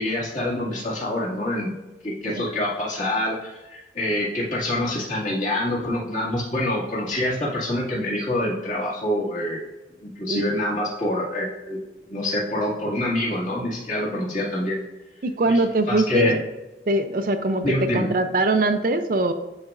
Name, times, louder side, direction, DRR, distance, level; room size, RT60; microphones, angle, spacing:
voice 1, 0.0-1.7 2.0-3.4 3.7-9.7 10.0-11.8 12.1-14.8 15.9-16.4 17.6-18.1, left 1 dB, 45° left, -5 dB, 2.0 m, -26 dB
voice 2, 15.2-16.4 16.9-19.3, right 2 dB, 50° right, 8 dB, 0.5 m, -22 dB
10.5 x 4.2 x 2.5 m, 1.0 s
head